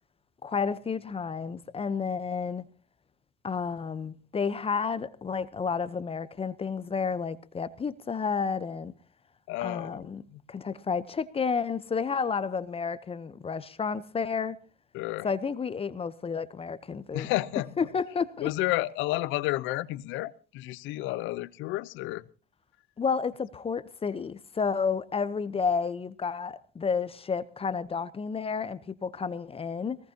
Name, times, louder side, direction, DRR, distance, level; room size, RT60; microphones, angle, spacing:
voice 1, 0.4-2.6 3.4-8.9 9.6-10.2 10.5-14.6 15.2-17.3 17.8-18.5 23.0-30.0, left 5 dB, 25° left, 0.9 m, -31 dB
voice 2, 9.5-10.0 10.3-10.4 14.9-15.3 17.1-17.7 18.4-22.2, left 17 dB, 65° left, 0.9 m, -31 dB
21.5 x 19.0 x 2.9 m
hypercardioid pair, 75°, 21 cm